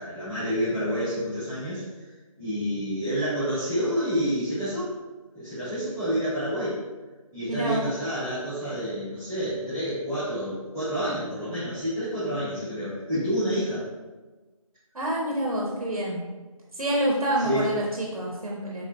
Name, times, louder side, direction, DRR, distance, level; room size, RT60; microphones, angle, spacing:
voice 1, 0.0-1.8 2.4-4.9 5.3-6.8 7.3-13.8 17.4-17.7, equal, 5° right, -19 dB, 0.9 m, -28 dB
voice 2, 7.5-7.8 14.9-16.2 16.7-18.8, right 1 dB, 85° right, -3 dB, 0.8 m, -27 dB
3.7 x 2.1 x 2.6 m, 1.2 s
figure-of-eight pair, 165°, 18 cm